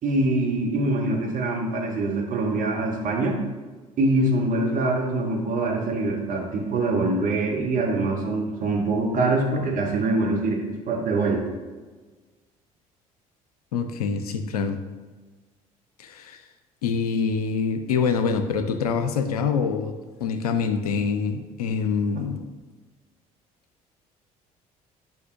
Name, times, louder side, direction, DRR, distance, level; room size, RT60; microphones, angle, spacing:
voice 1, 0.0-3.4 4.0-11.4, right 2 dB, 45° right, 0 dB, 1.5 m, -24 dB
voice 2, 13.7-14.8 16.0-16.4 16.8-19.9 20.2-22.4, left 5 dB, 75° left, 8 dB, 0.5 m, -25 dB
9.3 x 5.1 x 2.8 m, 1.3 s
figure-of-eight pair, 55°, 19 cm